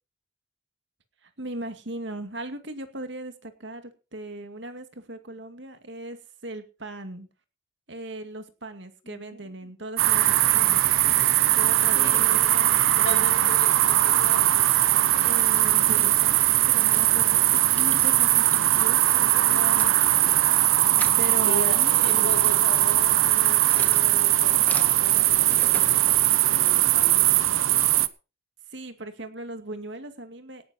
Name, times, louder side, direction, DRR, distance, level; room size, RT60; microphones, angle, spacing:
voice 1, 1.2-6.2 6.4-7.3 7.9-10.8 11.5-12.7 13.0-13.5 15.2-18.5 18.8-20.4 21.2-22.0 28.7-30.6, right 2 dB, 60° right, 8 dB, 2.3 m, -38 dB
voice 2, 9.0-9.7 11.9-12.4 12.9-15.0 17.0-17.4 19.4-19.9 21.4-26.0 26.4-27.2, left 1 dB, 70° left, 3 dB, 4.8 m, -38 dB
sound 1, 10.0-28.1, right 14 dB, 85° right, 0.8 m, -20 dB
sound 2, 15.9-26.7, left 2 dB, 10° left, 1.7 m, -45 dB
18.0 x 10.5 x 4.4 m, 0.33 s
head